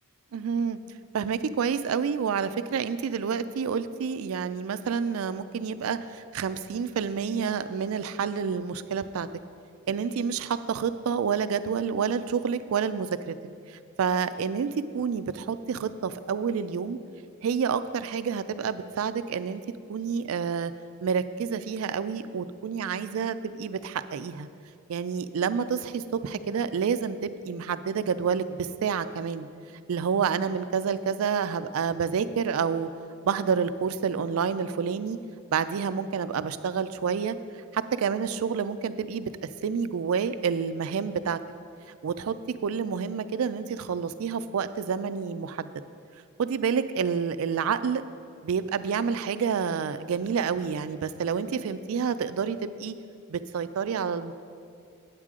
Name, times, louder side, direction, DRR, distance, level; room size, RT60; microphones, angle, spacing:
voice 1, 0.3-0.8 1.1-9.3 9.9-13.1 13.7-17.0 17.4-19.6 19.9-20.7 21.0-24.5 24.9-29.5 29.9-32.9 33.2-35.2 35.5-37.4 37.7-41.4 41.9-42.4 42.6-45.7 46.4-48.0 48.4-52.9 53.3-54.3, right 6 dB, 85° right, 13 dB, 0.4 m, -28 dB
8.8 x 8.3 x 3.7 m, 2.3 s
head